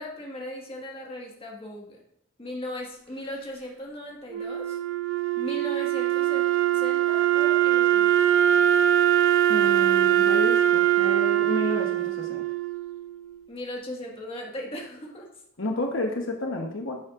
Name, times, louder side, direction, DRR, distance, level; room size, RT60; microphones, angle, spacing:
voice 1, 0.0-2.0 2.4-4.8 5.4-6.4 6.7-8.1 13.5-15.3, left 1 dB, 25° left, -1 dB, 1.6 m, -37 dB
Wind instrument woodwind instrument, 4.3-13.4, right 11 dB, 65° right, 0.4 m, -22 dB
voice 2, 9.5-12.5 15.6-17.0, left 2 dB, 70° left, 2 dB, 1.0 m, -31 dB
11.5 x 7.3 x 2.5 m, 0.69 s
head